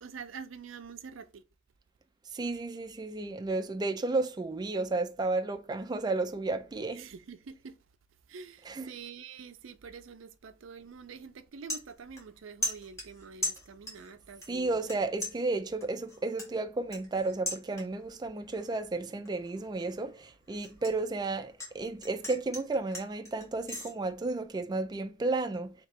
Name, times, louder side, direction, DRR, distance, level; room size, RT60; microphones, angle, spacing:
voice 1, 0.0-1.4 6.9-7.8 8.3-14.9, right 5 dB, 85° right, 0.5 m, -46 dB
voice 2, 2.3-7.1 8.7-8.9 14.5-25.7, right 3 dB, 20° right, 0.3 m, -32 dB
sound 1, 10.8-11.0 11.3-12.4 12.6-14.1 14.4-15.0 15.2-18.1 18.5-18.9 19.3-21.7 22.0-23.9, left 1 dB, 15° left, 1.4 m, -38 dB
3.1 x 2.9 x 4.4 m
head